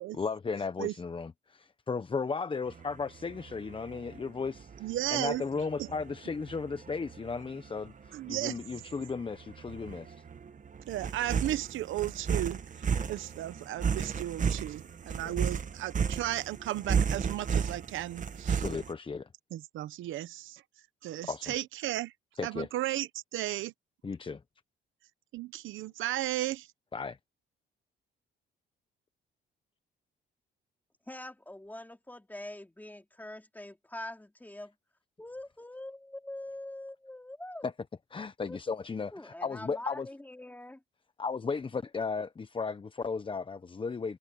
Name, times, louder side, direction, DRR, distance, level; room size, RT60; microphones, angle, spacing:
voice 1, 0.0-10.2 12.9-13.1 15.2-15.4 18.6-19.3 21.3-21.6 22.4-22.7 24.0-24.4 26.9-27.2 37.6-37.7 38.1-40.1 41.2-44.2, left 4 dB, 25° left, 0.9 m, -35 dB
sound 1, 2.7-18.9, right 6 dB, 40° right, 1.4 m, -34 dB
voice 2, 4.8-5.4 5.8-5.9 8.1-8.6 10.9-12.6 13.1-18.6 19.5-20.6 21.0-22.1 22.4-23.7 25.3-26.7, right 14 dB, 85° right, 1.0 m, -34 dB
voice 3, 31.1-34.7 35.2-37.7 38.5-38.6 39.1-40.8, left 1 dB, 10° left, 3.3 m, -44 dB
cardioid pair, 90°, 20 cm